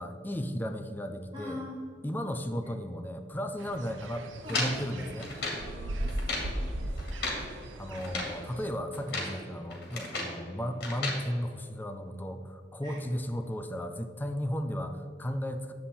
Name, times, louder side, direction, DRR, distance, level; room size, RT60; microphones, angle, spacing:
voice 1, 0.0-1.6 2.0-5.3 7.8-15.7, equal, 10° left, 7 dB, 0.5 m, -35 dB
voice 2, 1.3-1.9 2.6-2.7 4.4-5.2 5.5-7.0 12.8-13.0, left 1 dB, 25° right, -7 dB, 1.7 m, -44 dB
sound 1, 3.6-8.7, right 1 dB, 85° right, 0.7 m, -38 dB
sound 2, 4.5-5.7 6.1-6.5 7.0-7.5 7.9-8.4 8.9-9.4 9.7-10.4 10.8-11.2, left 2 dB, 60° left, 2.1 m, -34 dB
9.6 x 7.5 x 4.2 m, 2.3 s
head